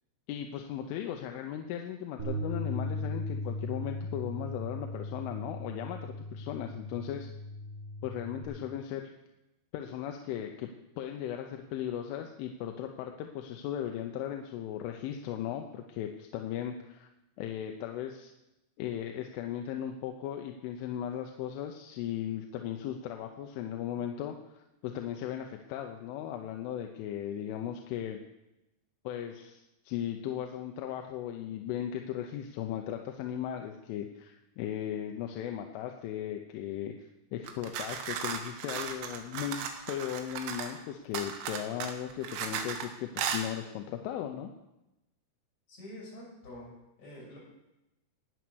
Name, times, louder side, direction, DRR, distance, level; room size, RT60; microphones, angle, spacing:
voice 1, 0.3-7.3 8.0-9.1 9.7-17.1 17.4-18.3 18.8-28.2 29.1-44.5, left 10 dB, 80° left, 4 dB, 3.3 m, -37 dB
Bass guitar, 2.2-8.4, left 1 dB, 15° right, 4.7 m, -37 dB
sound 1, 37.5-40.8 41.2-42.9 43.2-43.5, right 7 dB, 80° right, 4.0 m, -36 dB
voice 2, 45.7-46.7 47.0-47.4, left 1 dB, 35° left, -4 dB, 6.8 m, -46 dB
19.0 x 9.6 x 6.3 m, 0.93 s
omnidirectional pair, 5.8 m